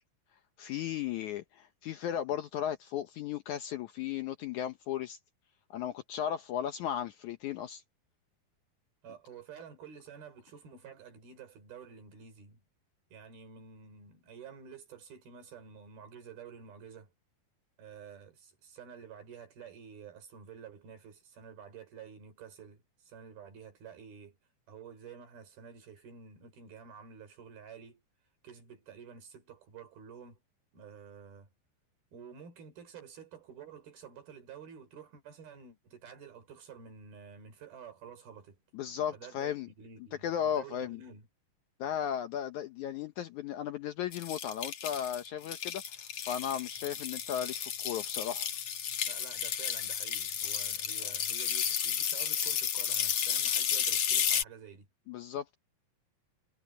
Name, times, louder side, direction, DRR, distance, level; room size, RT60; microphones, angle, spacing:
voice 1, 0.6-5.2 5.7-7.8 38.7-39.7 40.2-41.0 41.8-48.5 55.1-55.6, left 10 dB, 75° left, 1.9 m, -35 dB
voice 2, 9.0-12.6 13.1-17.1 17.8-24.4 24.7-28.0 28.4-30.4 30.7-31.5 32.1-38.6 39.1-41.3 49.0-54.9, right 7 dB, 80° right, 7.0 m, -50 dB
sound 1, 44.1-54.4, left 8 dB, 50° left, 2.3 m, -32 dB
omnidirectional pair, 4.3 m